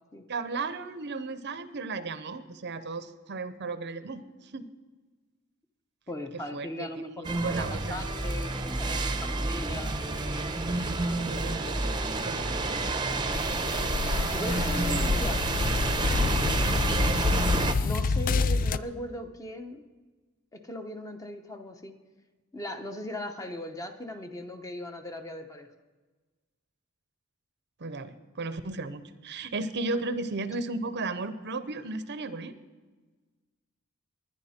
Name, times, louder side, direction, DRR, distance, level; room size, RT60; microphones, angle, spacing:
voice 1, 0.3-4.7 6.3-7.0 7.4-8.0 11.2-11.9 12.2-12.9 14.9-15.1 27.8-32.5, right 3 dB, 50° right, 13 dB, 0.7 m, -35 dB
voice 2, 6.1-10.0 11.4-11.8 14.3-15.4 17.8-19.8 20.5-21.9 22.5-25.7, left 1 dB, 15° left, 6 dB, 0.9 m, -38 dB
sound 1, 7.2-17.7, right 2 dB, 20° right, 0.8 m, -29 dB
sound 2, 13.3-18.8, left 4 dB, 40° left, 0.4 m, -28 dB
20.5 x 10.5 x 4.3 m, 1.3 s
head